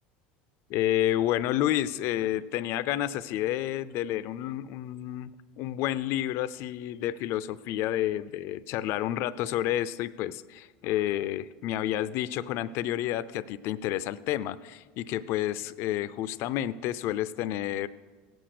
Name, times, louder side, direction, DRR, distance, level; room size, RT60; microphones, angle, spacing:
voice 1, 0.7-5.3 5.6-17.9, left 13 dB, 60° left, 16 dB, 0.6 m, -30 dB
17.0 x 7.9 x 6.6 m, 1.3 s
supercardioid pair, 110°, 5 cm